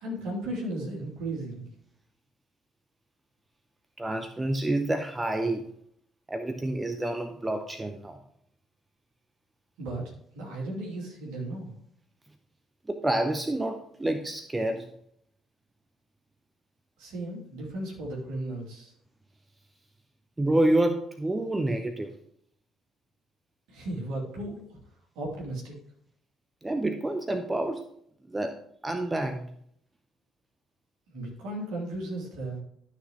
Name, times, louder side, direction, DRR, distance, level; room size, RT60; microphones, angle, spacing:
voice 1, 0.0-1.7 9.8-11.8 17.0-18.9 23.7-24.8 25.1-25.7 31.1-32.6, right 1 dB, 60° right, -3 dB, 2.7 m, -35 dB
voice 2, 4.0-5.7 6.3-8.2 12.9-14.9 20.4-22.1 26.6-27.8 28.3-29.5, right 1 dB, 15° right, 7 dB, 0.7 m, -28 dB
12.0 x 6.2 x 3.0 m, 0.67 s
figure-of-eight pair, 50°, 0 cm